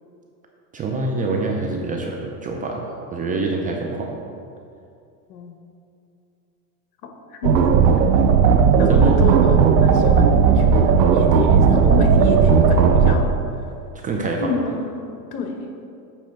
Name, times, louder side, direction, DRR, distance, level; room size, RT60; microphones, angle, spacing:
voice 1, 0.7-4.2 8.9-9.2 14.0-14.5, right 3 dB, 20° right, 0 dB, 0.4 m, -25 dB
voice 2, 7.0-7.7 8.8-13.3 14.4-15.0 15.3-15.7, left 5 dB, 65° left, 4 dB, 1.1 m, -28 dB
sound 1, 7.4-13.1, right 6 dB, 85° right, 0.7 m, -15 dB
8.9 x 3.1 x 5.9 m, 2.6 s
supercardioid pair, 115°, 48 cm